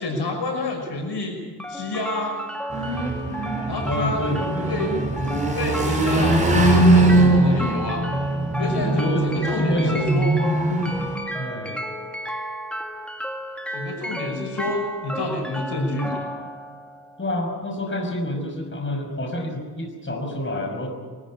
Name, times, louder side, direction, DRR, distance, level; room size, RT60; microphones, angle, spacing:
voice 1, 0.0-1.4 1.7-2.4 3.7-4.2 4.7-4.9 5.5-8.0 8.6-10.4 13.7-16.3, left 2 dB, 80° left, 2 dB, 6.0 m, -28 dB
sound 1, 1.6-17.6, equal, 5° left, 2.2 m, -33 dB
sound 2, 2.7-11.2, right 2 dB, 20° right, 5.1 m, -21 dB
voice 2, 3.8-4.7 6.9-7.1 8.9-10.1 11.3-11.8 17.2-20.9, left 1 dB, 30° left, 2 dB, 5.8 m, -28 dB
23.0 x 14.5 x 10.0 m, 1.5 s
wide cardioid pair, 90°, 40 cm